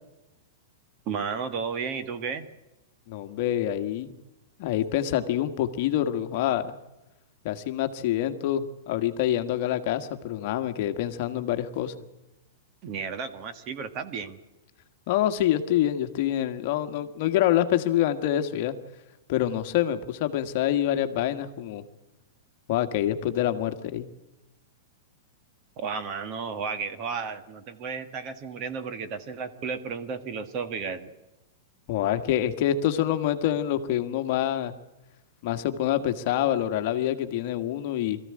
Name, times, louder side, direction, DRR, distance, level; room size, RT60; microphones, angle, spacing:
voice 1, 1.0-2.5 12.8-14.4 25.8-31.1, right 5 dB, 30° right, 11 dB, 1.6 m, -33 dB
voice 2, 3.1-4.2 4.6-6.8 7.4-11.9 15.1-18.8 19.3-21.8 22.7-24.1 31.9-34.7 35.4-38.2, left 12 dB, 45° left, 8 dB, 1.5 m, -26 dB
22.0 x 14.5 x 9.8 m, 1.0 s
supercardioid pair, 160°, 0 cm